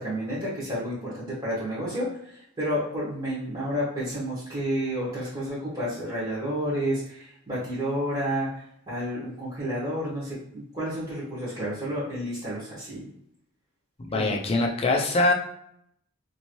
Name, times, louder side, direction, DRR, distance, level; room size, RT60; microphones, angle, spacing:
voice 1, 0.0-8.5 8.9-13.1 14.1-14.4, equal, 25° right, -9 dB, 1.1 m, -30 dB
voice 2, 14.0-15.3, left 2 dB, 25° left, 0 dB, 0.5 m, -23 dB
2.8 x 2.6 x 3.0 m, 0.73 s
head